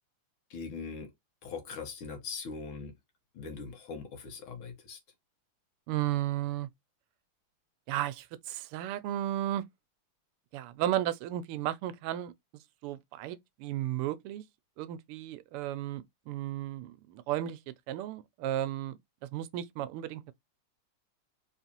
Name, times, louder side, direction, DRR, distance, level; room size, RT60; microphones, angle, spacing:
voice 1, 0.5-1.1 1.4-2.9 3.4-5.0, left 5 dB, 75° left, 2.0 m, -41 dB
voice 2, 5.9-6.7 7.9-9.6 10.5-14.4 14.8-19.0 19.3-20.3, right 13 dB, 90° right, 1.5 m, -34 dB
4.2 x 3.2 x 2.8 m
omnidirectional pair, 2.4 m